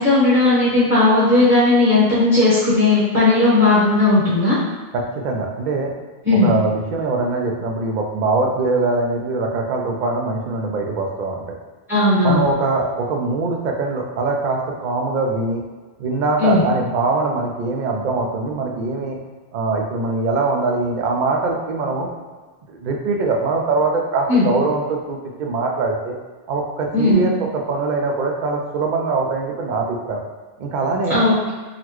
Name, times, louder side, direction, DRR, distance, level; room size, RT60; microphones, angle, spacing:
voice 1, 0.0-4.6 6.2-6.5 11.9-12.5 16.4-16.6 24.3-24.5 26.9-27.2 31.1-31.5, left 2 dB, 15° right, -11 dB, 0.9 m, -16 dB
voice 2, 4.9-5.9 6.3-11.6 12.2-15.6 16.0-19.2 19.5-22.1 22.7-26.2 26.5-30.2 30.6-31.2, right 3 dB, 55° right, 1 dB, 0.6 m, -22 dB
3.9 x 2.1 x 3.0 m, 1.4 s
omnidirectional pair, 1.0 m